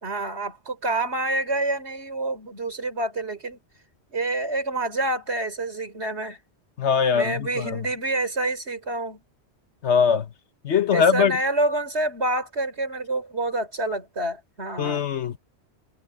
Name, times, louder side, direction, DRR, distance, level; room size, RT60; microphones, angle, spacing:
voice 1, 0.0-3.6 4.1-6.4 7.1-9.2 10.9-15.0, right 2 dB, 75° right, 4.1 m, -27 dB
voice 2, 6.8-7.8 9.8-10.3 10.6-11.4 14.8-15.4, left 6 dB, 85° left, 1.4 m, -21 dB
omnidirectional pair, 1.1 m